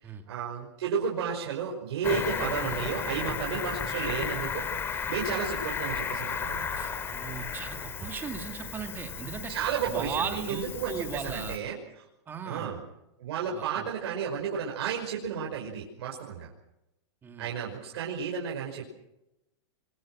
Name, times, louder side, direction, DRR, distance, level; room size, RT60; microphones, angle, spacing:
voice 1, 0.0-6.8 9.5-12.1 12.5-12.8 13.2-16.5 17.4-19.0, right 7 dB, 65° right, -2 dB, 5.7 m, -33 dB
Cricket, 2.0-11.6, left 6 dB, 15° left, 2.1 m, -34 dB
voice 2, 6.7-9.5 9.9-11.6 12.3-12.7 13.5-13.9 17.2-17.5, right 6 dB, 15° right, 5 dB, 2.2 m, -37 dB
25.0 x 22.0 x 6.2 m, 0.88 s
supercardioid pair, 165°, 15 cm